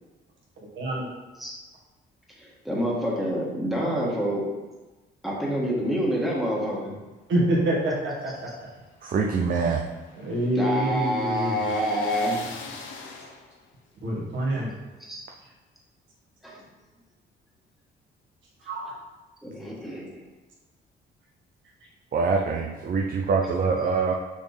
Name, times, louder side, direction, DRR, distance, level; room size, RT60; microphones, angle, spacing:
voice 1, 0.7-1.1 7.3-8.3 9.7-9.9 10.2-11.6 14.0-14.7 18.6-18.9, right 1 dB, 70° right, -4 dB, 1.9 m, -26 dB
voice 2, 2.4-4.5 5.2-6.9 10.6-12.5 15.1-15.2 16.4-16.6 19.4-20.2, equal, ahead, -4 dB, 1.8 m, -27 dB
sound 1, 8.2-13.7, left 4 dB, 80° left, 0.8 m, -43 dB
voice 3, 9.0-9.8 22.1-24.1, right 5 dB, 45° right, 1 dB, 0.6 m, -24 dB
6.2 x 4.3 x 3.5 m, 1.2 s
cardioid pair, 90°, 20 cm